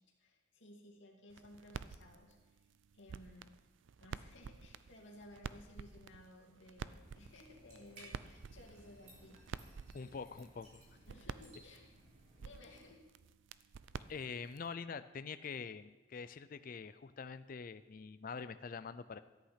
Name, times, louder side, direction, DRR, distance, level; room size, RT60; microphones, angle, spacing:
voice 1, 0.2-2.5 2.9-3.5 4.0-9.4 11.1-11.8 12.4-13.0, left 1 dB, 70° left, 0 dB, 2.3 m, -57 dB
sound 1, 1.3-14.7, right 5 dB, 75° right, 0.4 m, -51 dB
sound 2, 6.9-12.9, right 1 dB, 35° right, 3.1 m, -60 dB
voice 2, 9.9-10.8 14.1-19.2, left 5 dB, 45° left, 12 dB, 0.4 m, -45 dB
13.5 x 8.5 x 5.8 m, 1.2 s
head